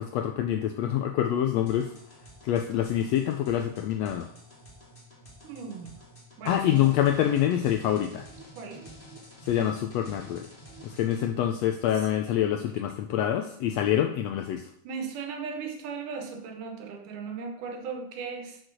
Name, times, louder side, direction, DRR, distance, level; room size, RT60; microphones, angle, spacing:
voice 1, 0.0-1.9 2.4-4.3 6.4-8.2 9.5-10.5 10.8-14.6, left 11 dB, 85° left, 5 dB, 1.5 m, -26 dB
sound 1, 1.7-11.3, right 1 dB, 20° left, 2.1 m, -49 dB
voice 2, 5.4-6.0 6.4-6.9 8.6-8.8 12.3-12.6 14.8-18.6, right 5 dB, 85° right, 4 dB, 2.8 m, -37 dB
6.5 x 6.5 x 6.2 m, 0.68 s
omnidirectional pair, 3.5 m